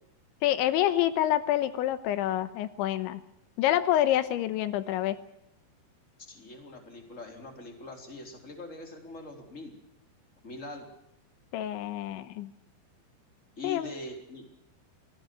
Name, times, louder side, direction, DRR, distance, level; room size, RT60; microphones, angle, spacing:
voice 1, 0.4-3.2 3.6-5.2 11.5-12.5 13.6-13.9, left 13 dB, 85° left, 13 dB, 3.3 m, -27 dB
voice 2, 6.3-9.8 10.4-10.9 13.6-14.5, left 2 dB, 15° left, 4 dB, 3.9 m, -42 dB
25.0 x 18.5 x 6.2 m, 0.81 s
omnidirectional pair, 5.3 m